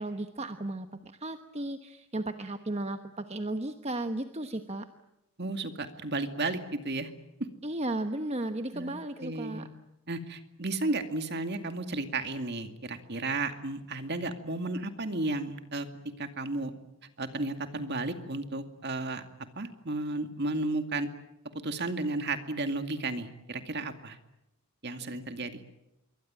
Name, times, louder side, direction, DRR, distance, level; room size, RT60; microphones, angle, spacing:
voice 1, 0.0-4.9 7.6-9.7 25.0-25.1, right 1 dB, 30° right, 7 dB, 1.1 m, -35 dB
voice 2, 5.4-7.1 8.7-8.9 9.2-9.7 10.1-15.9 16.2-16.7 17.2-19.2 19.6-21.1 21.6-24.2 24.8-25.6, right 2 dB, 50° right, 7 dB, 2.2 m, -33 dB
26.5 x 23.5 x 8.8 m, 0.89 s
head